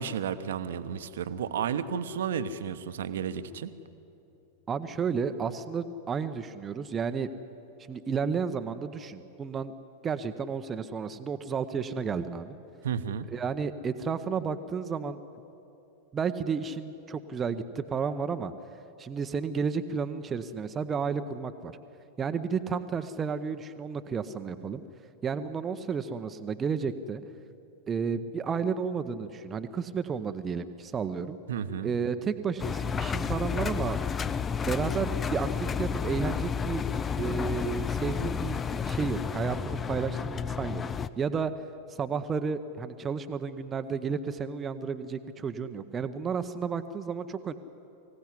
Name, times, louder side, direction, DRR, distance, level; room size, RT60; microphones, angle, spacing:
voice 1, 0.0-3.7 12.8-13.3 31.5-31.9, right 7 dB, 60° right, 12 dB, 1.0 m, -32 dB
voice 2, 4.7-7.3 7.9-9.7 10.0-12.6 13.3-15.2 16.1-18.5 19.0-21.7 22.2-24.8 25.2-27.2 27.9-31.4 31.8-34.0 34.6-36.8 37.2-40.8 41.2-41.5 42.0-47.5, right 6 dB, 20° right, 10 dB, 0.8 m, -32 dB
Engine, 32.6-41.1, left 6 dB, 20° left, 0.6 m, -31 dB
23.5 x 16.5 x 10.0 m, 2.9 s
figure-of-eight pair, 90°, 0 cm